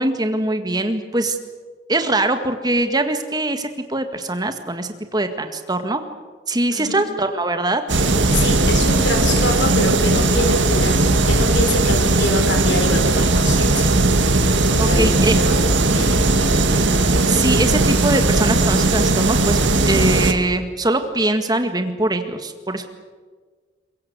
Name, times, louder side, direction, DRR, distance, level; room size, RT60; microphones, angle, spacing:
voice 1, 0.0-1.4 1.9-6.0 6.5-7.8 14.8-15.4 17.3-19.6 19.8-22.9, right 2 dB, 20° right, 7 dB, 1.8 m, -22 dB
voice 2, 6.7-7.0 8.3-11.0 11.3-14.0 14.6-16.5, left 2 dB, 80° left, 4 dB, 5.4 m, -25 dB
sound 1, 7.9-20.3, right 2 dB, 85° right, 2.0 m, -17 dB
23.5 x 21.5 x 8.2 m, 1.5 s
head